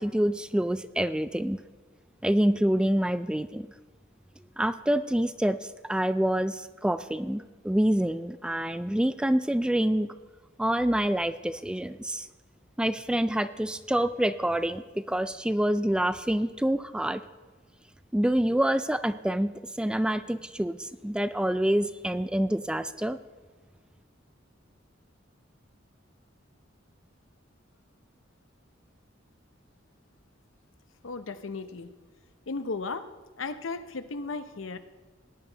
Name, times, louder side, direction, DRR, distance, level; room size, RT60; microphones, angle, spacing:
voice 1, 0.0-1.6 2.2-3.7 4.6-5.6 5.8-10.1 10.6-12.3 12.8-17.2 18.1-23.2, right 1 dB, 5° right, 12 dB, 0.3 m, -27 dB
voice 2, 31.0-31.9 32.5-33.1 33.4-34.8, left 3 dB, 85° left, 10 dB, 0.8 m, -35 dB
18.0 x 10.0 x 4.0 m, 1.4 s
head